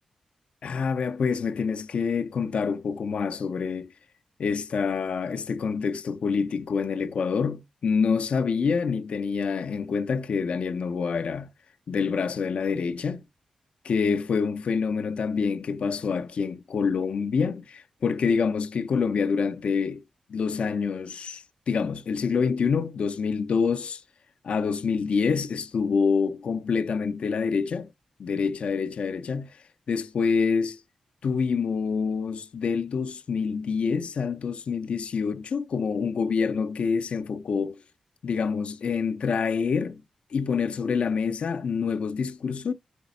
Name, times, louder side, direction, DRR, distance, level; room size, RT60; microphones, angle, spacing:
voice 1, 0.6-3.9 4.4-11.5 11.9-13.2 13.8-20.0 20.3-24.0 24.4-27.9 28.2-30.8 31.2-37.8 38.2-40.0 40.3-42.7, left 5 dB, 65° left, 0.5 m, -27 dB
5.0 x 4.0 x 5.3 m
cardioid pair, 70°, 2 cm